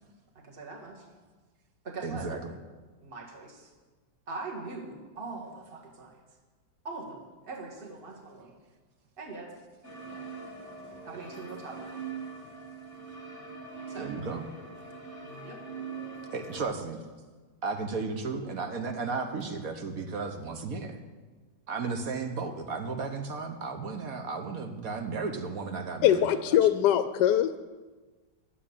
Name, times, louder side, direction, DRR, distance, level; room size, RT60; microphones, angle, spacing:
voice 1, 0.4-1.1 1.8-2.3 3.0-3.7 4.3-6.2 6.8-8.5 9.2-9.5 11.0-12.0 13.9-14.1 15.2-15.6 16.5-16.6, right 3 dB, 30° right, 0 dB, 1.9 m, -42 dB
voice 2, 2.0-2.4 14.0-14.4 16.3-17.0 17.6-21.0 21.7-26.6, right 4 dB, 55° right, 6 dB, 1.4 m, -34 dB
sound 1, 9.8-16.6, right 5 dB, 10° left, 1.3 m, -42 dB
voice 3, 26.0-27.6, left 11 dB, 75° left, 11 dB, 1.1 m, -22 dB
11.5 x 7.5 x 8.6 m, 1.3 s
omnidirectional pair, 2.0 m